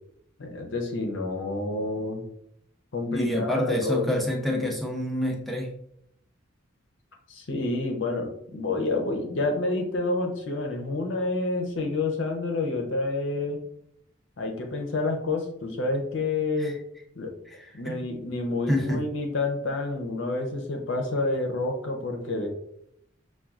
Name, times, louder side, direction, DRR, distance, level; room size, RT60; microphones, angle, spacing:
voice 1, 0.4-2.2 2.9-4.1 7.3-13.6 14.4-16.8 17.2-17.3 17.7-22.5, left 2 dB, 65° left, 3 dB, 0.6 m, -28 dB
voice 2, 3.1-5.7 16.6-16.7 17.5-18.1 18.7-19.1, left 1 dB, ahead, 0 dB, 0.5 m, -28 dB
5.7 x 2.3 x 2.4 m, 0.74 s
head